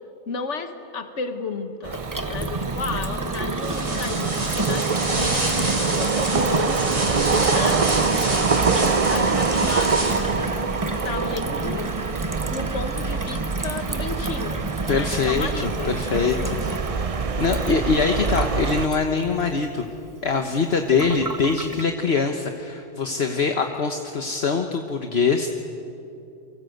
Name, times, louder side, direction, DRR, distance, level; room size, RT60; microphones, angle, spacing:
voice 1, 0.3-8.0 8.6-10.5 11.0-11.9 12.5-16.6, left 4 dB, 80° left, 7 dB, 1.7 m, -33 dB
sound 1, 1.8-18.9, right 5 dB, 35° right, 0.7 m, -25 dB
Gurgling / Water tap faucet / Sink (filling or washing), 1.9-21.8, right 2 dB, 20° right, 1.0 m, -33 dB
sound 2, 3.6-10.5, right 1 dB, 65° right, 5.4 m, -29 dB
voice 2, 14.9-16.6 17.4-19.9 20.2-25.5, left 5 dB, 60° left, 4 dB, 1.5 m, -23 dB
29.5 x 24.5 x 8.0 m, 2.7 s
omnidirectional pair, 1.2 m